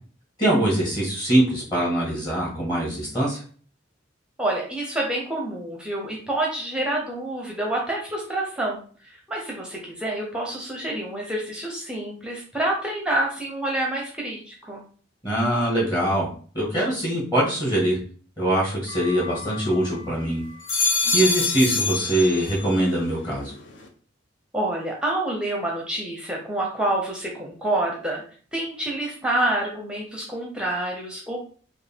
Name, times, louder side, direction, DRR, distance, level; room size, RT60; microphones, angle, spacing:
voice 1, 0.4-3.4 15.2-18.0 18.4-20.4 21.1-23.5, right 1 dB, 25° left, -5 dB, 1.6 m, -23 dB
voice 2, 4.4-14.8 21.0-21.5 24.5-28.2 28.5-31.4, right 1 dB, 5° right, -2 dB, 0.7 m, -28 dB
sound 1, 18.9-20.0 20.5-22.9 23.2-23.8, left 3 dB, 70° left, 0.7 m, -26 dB
5.0 x 2.3 x 3.5 m, 0.44 s
head